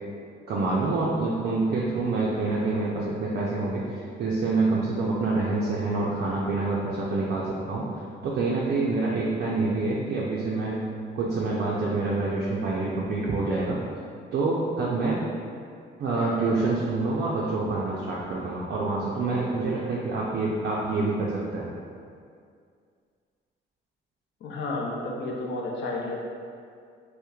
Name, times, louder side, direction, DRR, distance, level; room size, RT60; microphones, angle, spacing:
voice 1, 0.5-10.8 11.2-13.8 14.3-15.2 16.0-21.7, right 3 dB, 55° right, -5 dB, 0.4 m, -27 dB
voice 2, 16.1-16.5 24.4-26.2, left 2 dB, 65° left, -2 dB, 0.5 m, -32 dB
2.9 x 2.1 x 2.3 m, 2.3 s
cardioid pair, 90°, 20 cm